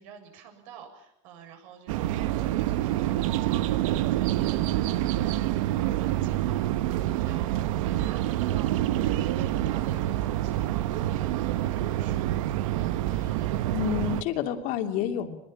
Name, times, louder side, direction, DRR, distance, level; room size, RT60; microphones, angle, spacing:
voice 1, 0.0-12.6, right 7 dB, 75° right, 5 dB, 7.6 m, -49 dB
sound 1, 1.9-14.2, right 14 dB, 90° right, 1.2 m, -27 dB
voice 2, 13.2-15.4, left 10 dB, 50° left, 5 dB, 2.7 m, -30 dB
24.0 x 21.0 x 8.8 m, 0.78 s
supercardioid pair, 155°, 17 cm